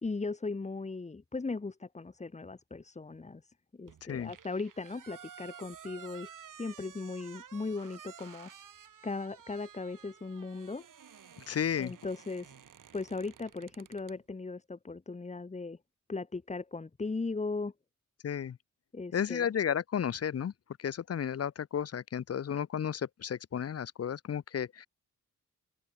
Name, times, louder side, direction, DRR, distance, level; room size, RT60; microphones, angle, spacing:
voice 1, 0.0-6.3 6.6-8.5 9.0-10.8 11.8-12.5 12.9-15.8 16.1-17.7 18.9-19.5, left 3 dB, 20° left, 1.7 m, -38 dB
sound 1, 3.9-14.2, right 8 dB, 75° right, 7.2 m, -53 dB
voice 2, 11.5-11.9 18.2-18.6 19.1-20.5 20.8-24.9, left 8 dB, 50° left, 0.8 m, -33 dB
open air
wide cardioid pair, 170°, 32 cm